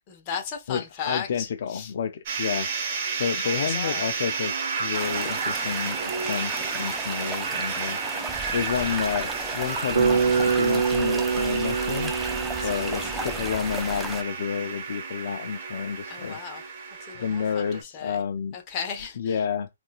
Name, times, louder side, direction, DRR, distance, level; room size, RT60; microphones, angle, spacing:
voice 1, 0.1-1.9 3.4-4.0 12.6-12.7 13.1-13.4 16.1-16.6 17.1-18.2 18.5-19.4, left 6 dB, 30° left, 0.9 m, -35 dB
voice 2, 0.7-2.7 3.2-4.5 4.8-8.0 8.5-12.1 12.6-16.4 17.2-18.6 19.2-19.7, left 7 dB, 60° left, 0.3 m, -30 dB
sound 1, 2.3-17.8, right 5 dB, 40° right, 1.0 m, -32 dB
sound 2, 4.9-14.2, right 2 dB, 5° right, 0.4 m, -35 dB
Bass guitar, 9.9-14.1, right 6 dB, 70° right, 0.9 m, -25 dB
3.6 x 2.3 x 2.3 m
hypercardioid pair, 140°, 0 cm